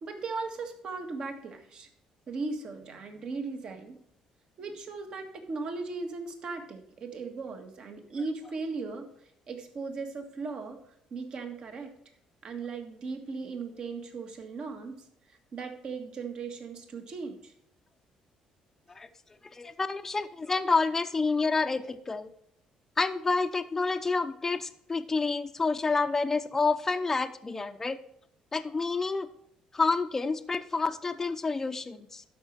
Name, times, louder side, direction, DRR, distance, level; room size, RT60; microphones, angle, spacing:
voice 1, 0.0-1.9 2.3-4.0 4.6-9.1 9.5-11.9 12.4-15.0 15.5-17.5, right 4 dB, 50° right, 5 dB, 1.7 m, -37 dB
voice 2, 19.5-22.3 23.0-28.0 28.5-29.3 29.7-32.2, left 4 dB, 20° left, 8 dB, 0.6 m, -28 dB
12.0 x 5.4 x 4.5 m, 0.72 s
cardioid pair, 125°, 2 cm